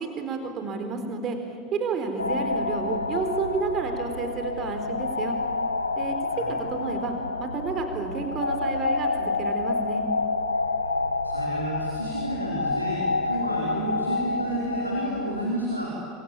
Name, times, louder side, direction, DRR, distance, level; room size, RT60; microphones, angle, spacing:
voice 1, 0.0-1.4 1.7-5.4 6.0-7.1 7.4-10.0, right 4 dB, 35° right, 6 dB, 4.1 m, -30 dB
sound 1, 2.2-15.5, left 3 dB, 80° left, 1.1 m, -28 dB
voice 2, 11.2-15.9, right 1 dB, 90° right, -3 dB, 4.4 m, -31 dB
26.5 x 25.5 x 8.7 m, 2.4 s
figure-of-eight pair, 80°, 0 cm